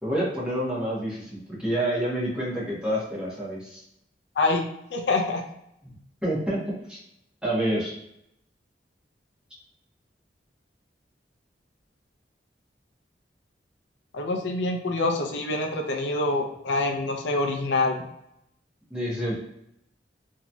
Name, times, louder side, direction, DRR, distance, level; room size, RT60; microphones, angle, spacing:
voice 1, 0.0-3.8 6.2-6.6 6.9-7.0 7.4-7.9 18.9-19.3, right 1 dB, 5° right, -8 dB, 1.1 m, -28 dB
voice 2, 4.9-5.4 14.1-18.0, left 2 dB, 75° left, 3 dB, 0.5 m, -26 dB
3.0 x 2.7 x 2.3 m, 0.80 s
head